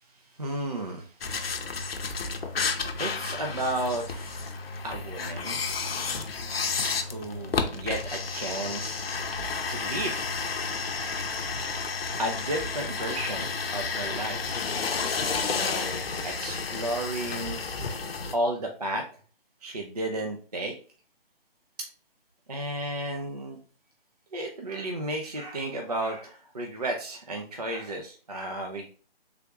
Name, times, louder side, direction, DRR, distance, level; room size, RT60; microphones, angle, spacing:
voice 1, 0.1-1.4 3.0-4.6 4.8-6.4 6.7-9.0 9.7-10.2 12.2-14.4 15.5-17.6 18.3-19.0 19.6-20.7 22.5-23.6 24.3-28.9, right 1 dB, 40° right, 2 dB, 0.4 m, -33 dB
sound 1, 1.2-18.3, left 4 dB, 70° left, 0.6 m, -31 dB
3.4 x 2.3 x 2.9 m, 0.40 s
hypercardioid pair, 175°, 31 cm